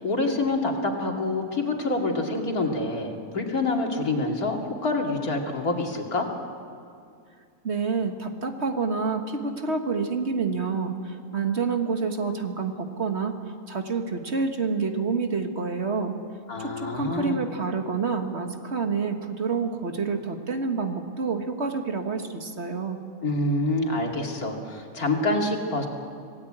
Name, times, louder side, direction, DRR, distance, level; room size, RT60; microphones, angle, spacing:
voice 1, 0.0-6.3 16.5-17.4 23.2-25.9, left 2 dB, 90° left, 1 dB, 3.1 m, -26 dB
voice 2, 7.6-13.3 13.7-16.2 16.6-23.0, right 4 dB, 50° right, 5 dB, 1.8 m, -28 dB
26.0 x 18.0 x 8.8 m, 2.4 s
omnidirectional pair, 1.5 m